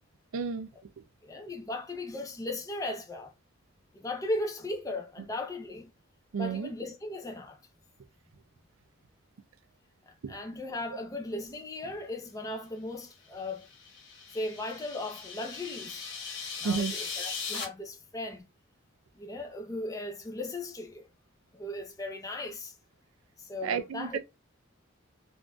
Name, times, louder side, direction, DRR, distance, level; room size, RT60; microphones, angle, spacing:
voice 1, 0.3-0.7 6.3-6.7 10.2-10.4 16.6-16.9 23.6-24.2, right 6 dB, 85° right, 0.4 m, -31 dB
voice 2, 1.2-3.3 3.9-5.9 6.4-7.6 10.1-13.7 14.3-16.1 16.6-18.5 19.2-21.1 21.5-22.7 23.4-24.2, left 2 dB, 15° left, 0.5 m, -37 dB
sound 1, 13.5-17.6, left 5 dB, 70° left, 1.1 m, -39 dB
3.8 x 2.5 x 2.3 m
head